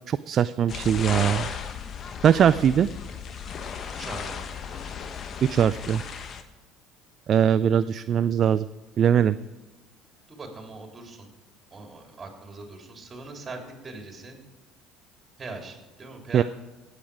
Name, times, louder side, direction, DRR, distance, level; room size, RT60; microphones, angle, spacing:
voice 1, 0.1-1.5 2.2-2.9 5.4-6.0 7.3-8.6 9.0-9.4 16.3-16.4, right 9 dB, 50° right, 15 dB, 0.3 m, -21 dB
sound 1, 0.7-6.4, left 6 dB, 45° left, 1.2 m, -35 dB
voice 2, 3.9-4.4 10.3-11.3 11.7-14.4 15.4-16.4, right 3 dB, 30° right, 2 dB, 3.5 m, -41 dB
17.0 x 8.3 x 5.0 m, 1.2 s
hypercardioid pair, 65°, 0 cm